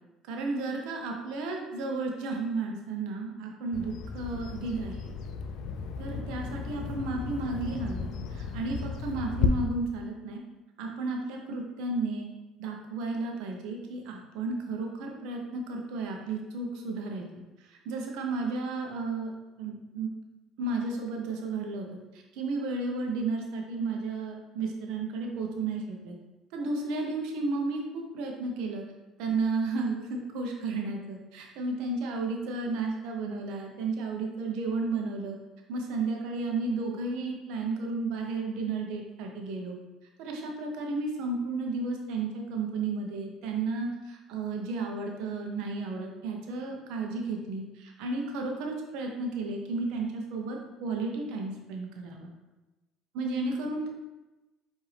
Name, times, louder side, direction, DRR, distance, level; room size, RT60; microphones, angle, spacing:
voice 1, 0.3-5.1 6.0-10.4 10.8-12.3 12.6-17.2 17.6-19.3 19.6-20.1 20.6-21.9 22.1-26.2 26.5-28.8 29.2-35.4 35.7-39.8 40.2-52.3 53.1-53.9, right 3 dB, 75° right, 1 dB, 0.7 m, -33 dB
Bird vocalization bird call bird song, 3.7-9.5, left 7 dB, 70° left, 0.3 m, -34 dB
4.8 x 2.6 x 3.2 m, 1.1 s
supercardioid pair, 95°, 0 cm